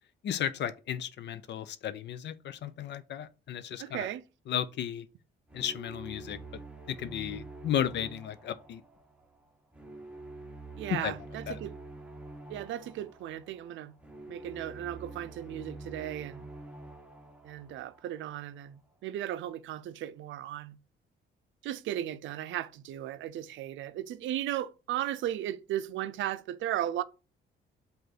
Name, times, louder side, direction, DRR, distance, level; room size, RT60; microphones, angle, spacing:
voice 1, 0.2-4.1 4.5-5.1 5.5-6.4 6.9-8.8 10.9-11.2 11.5-11.6, left 9 dB, 60° left, 0.5 m, -34 dB
voice 2, 3.8-4.2 10.8-11.8 12.5-13.9 14.3-16.5 17.4-20.8 21.6-27.0, right 12 dB, 75° right, 0.4 m, -36 dB
Cinematic Angry Astronef (Ultimatum), 5.5-18.6, right 2 dB, 5° right, 0.9 m, -47 dB
5.1 x 2.5 x 4.0 m
cardioid pair, 90°, 20 cm